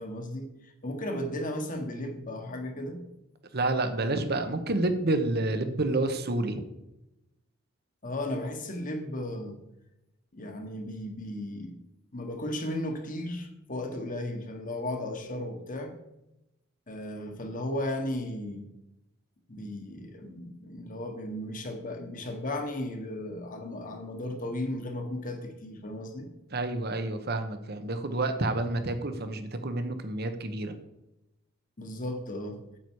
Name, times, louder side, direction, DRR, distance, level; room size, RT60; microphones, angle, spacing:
voice 1, 0.0-3.0 8.0-9.6 10.3-11.8 12.1-16.0 16.9-18.7 19.5-26.3 31.8-32.6, left 1 dB, 40° left, 1.5 m, -35 dB
voice 2, 3.5-6.6 26.5-30.7, right 2 dB, 50° right, 1.1 m, -29 dB
9.1 x 8.3 x 4.8 m
head